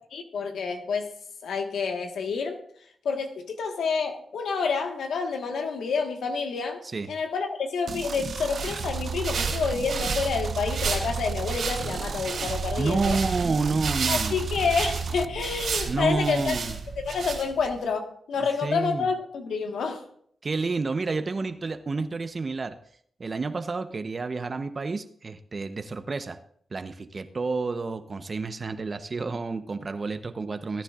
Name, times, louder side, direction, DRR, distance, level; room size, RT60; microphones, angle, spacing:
voice 1, 0.1-1.1 1.4-2.6 3.0-6.8 7.1-13.2 14.1-16.5 17.0-20.0, left 5 dB, 85° left, 4 dB, 1.4 m, -28 dB
voice 2, 6.8-7.1 12.8-14.4 15.9-16.8 18.4-19.1 20.4-22.8 23.2-26.4 26.7-30.8, right 4 dB, 45° right, 10 dB, 0.8 m, -29 dB
sound 1, 7.9-15.3, right 6 dB, 60° right, 0.4 m, -34 dB
sound 2, 8.3-17.8, right 5 dB, 80° right, 3.2 m, -32 dB
18.0 x 9.9 x 2.5 m, 0.64 s
cardioid pair, 50°, 0 cm